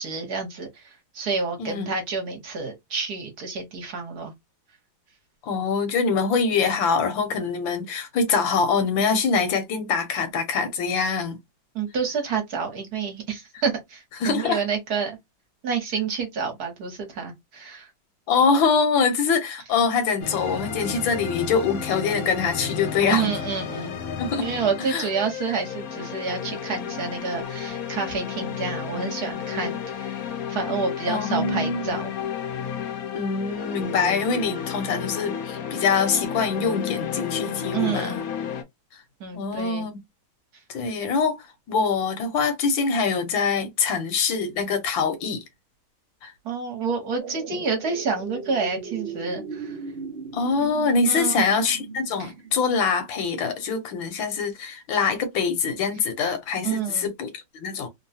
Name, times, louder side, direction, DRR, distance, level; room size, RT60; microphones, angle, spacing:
voice 1, 0.0-4.3 11.7-15.2 15.6-17.9 23.1-24.0 24.4-30.2 30.5-32.1 37.7-38.2 39.2-39.9 46.4-49.8 51.0-51.4 52.2-52.3 56.6-57.1, right 5 dB, 55° right, 1.5 m, -29 dB
voice 2, 1.6-1.9 5.4-11.4 14.2-14.6 18.3-23.3 24.2-24.5 24.9-25.1 31.1-31.9 33.1-38.2 39.3-40.0 40.7-45.4 46.2-46.3 50.3-57.9, left 5 dB, 80° left, 1.6 m, -24 dB
sound 1, 20.2-38.6, left 8 dB, 60° left, 0.9 m, -32 dB
sound 2, 47.2-53.3 53.7-53.8, right 5 dB, 75° right, 0.5 m, -37 dB
3.7 x 2.2 x 2.7 m
omnidirectional pair, 2.1 m